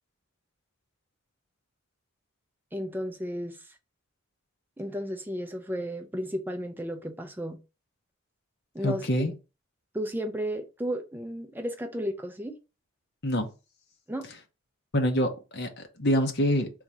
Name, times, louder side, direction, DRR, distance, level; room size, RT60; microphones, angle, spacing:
voice 1, 2.7-3.6 4.8-7.6 8.7-9.3 9.9-12.5 14.1-14.3, equal, 10° right, 0.5 m, -33 dB
voice 2, 8.8-9.3 13.2-13.5 14.9-16.7, equal, 50° left, 0.8 m, -26 dB
3.7 x 2.7 x 4.6 m
head